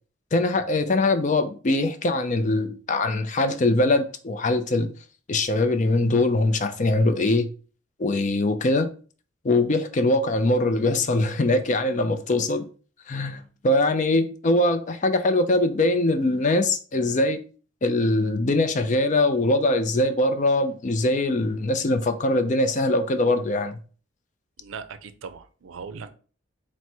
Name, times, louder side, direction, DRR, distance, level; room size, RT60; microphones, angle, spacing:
voice 1, 0.3-4.9 5.3-7.5 8.0-8.9 9.4-12.6 13.1-17.4 17.8-23.8, left 2 dB, 35° left, 0.4 m, -22 dB
voice 2, 24.6-26.1, right 5 dB, 80° right, 0.4 m, -39 dB
4.6 x 2.1 x 4.3 m
head